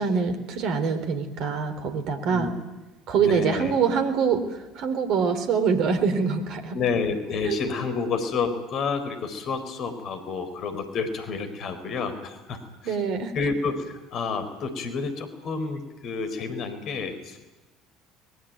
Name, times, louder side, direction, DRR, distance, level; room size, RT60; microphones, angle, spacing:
voice 1, 0.0-2.5 3.1-6.8 7.5-7.6 12.9-13.3, right 6 dB, 55° right, 9 dB, 3.6 m, -24 dB
voice 2, 3.2-3.7 6.7-13.0 13.3-17.6, left 4 dB, 50° left, 9 dB, 4.2 m, -29 dB
23.5 x 21.5 x 9.3 m, 1.1 s
figure-of-eight pair, 60°, 0 cm